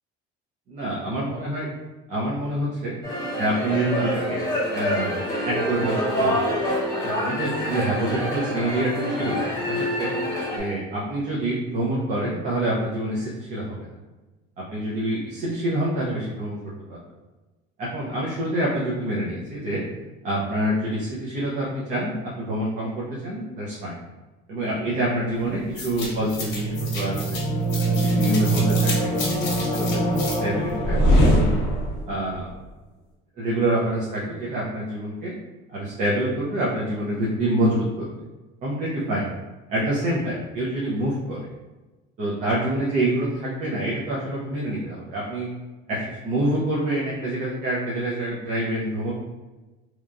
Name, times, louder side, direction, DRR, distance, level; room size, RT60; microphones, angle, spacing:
voice 1, 0.7-1.7 2.1-3.0 3.4-4.4 4.7-6.7 7.2-9.4 9.7-10.1 10.5-13.9 14.6-16.6 16.9-17.0 17.8-19.8 20.2-24.0 24.5-27.4 27.8-31.0 31.4-31.6 32.1-32.5 33.4-35.3 35.7-38.1 38.6-39.3 39.7-41.5 42.2-45.5 45.9-49.1, right 1 dB, 35° right, -6 dB, 0.5 m, -27 dB
sound 1, 3.0-10.6, equal, 15° left, 0.8 m, -26 dB
sound 2, 25.8-32.1, right 1 dB, 60° left, 0.9 m, -22 dB
2.9 x 2.2 x 2.4 m, 1.2 s
cardioid pair, 170°, 21 cm